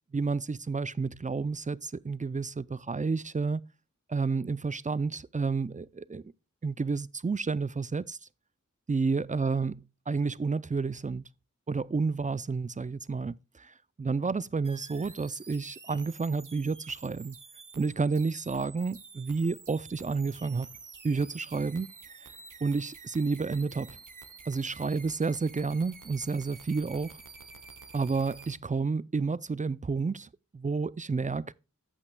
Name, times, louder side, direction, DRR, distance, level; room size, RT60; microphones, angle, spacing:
voice 1, 0.1-3.6 4.1-6.2 6.6-8.2 8.9-11.2 11.7-17.4 17.7-20.7 21.0-21.9 22.6-24.0 24.5-27.2 27.9-31.5, right 4 dB, 25° right, 0.4 m, -30 dB
sound 1, 14.6-28.6, right 4 dB, 75° right, 1.1 m, -50 dB
14.5 x 5.7 x 2.2 m
wide cardioid pair, 40°, 31 cm